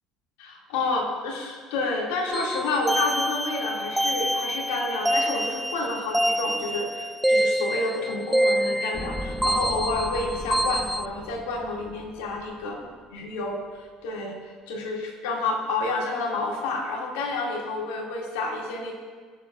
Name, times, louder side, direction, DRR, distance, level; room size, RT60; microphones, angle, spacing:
voice 1, 0.4-12.8 13.1-13.6 14.0-14.4 14.7-18.9, left 3 dB, 80° left, -2 dB, 3.0 m, -29 dB
sound 1, 2.3-11.1, right 1 dB, 5° right, 0.5 m, -26 dB
sound 2, 8.9-13.2 13.5-13.6, left 1 dB, 20° left, 1.4 m, -39 dB
24.0 x 8.1 x 2.7 m, 1.5 s
hypercardioid pair, 70°, 0 cm